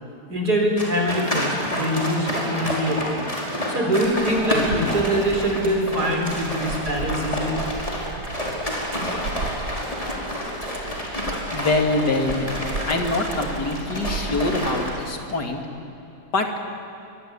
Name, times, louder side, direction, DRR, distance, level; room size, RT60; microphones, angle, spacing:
voice 1, 0.3-3.3 3.7-7.6, equal, 70° right, 2 dB, 4.8 m, -23 dB
sound 1, 0.8-14.9, equal, 20° left, 5.3 m, -29 dB
Dog, 4.0-15.4, right 3 dB, 90° right, 2.5 m, -36 dB
voice 2, 11.5-12.6 12.9-15.6 16.3-16.5, left 2 dB, 85° left, 4 dB, 3.1 m, -24 dB
24.0 x 23.0 x 10.0 m, 3.0 s
omnidirectional pair, 1.7 m